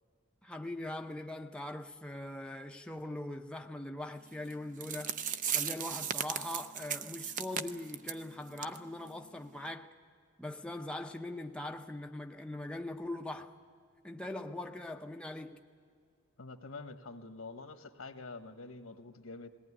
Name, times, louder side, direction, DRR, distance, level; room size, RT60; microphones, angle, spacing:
voice 1, 0.4-5.2 5.5-9.9 10.4-13.5 14.0-15.6, left 1 dB, 5° left, 0.6 m, -41 dB
sound 1, 4.5-4.6 4.8-8.2 8.6-8.8 9.1-9.2 9.7-9.8, right 8 dB, 40° right, 0.6 m, -36 dB
voice 2, 16.4-19.5, left 3 dB, 85° left, 1.3 m, -46 dB
20.0 x 17.5 x 9.8 m
head